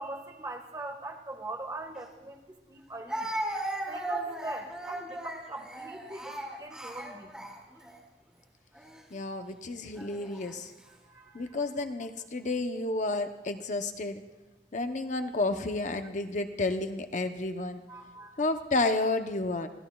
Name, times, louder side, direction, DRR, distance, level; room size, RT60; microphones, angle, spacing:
voice 1, 0.0-3.3 3.9-7.5 10.8-11.6 17.9-18.3, right 2 dB, 20° right, 3 dB, 1.5 m, -42 dB
Speech, 2.0-2.1 3.1-8.0 8.7-9.0 10.0-10.5, right 1 dB, 5° right, 2.3 m, -37 dB
voice 2, 9.1-10.7 11.3-14.2 14.7-17.8 18.4-19.7, left 2 dB, 45° left, 7 dB, 0.7 m, -31 dB
26.0 x 16.5 x 2.3 m, 1.1 s
head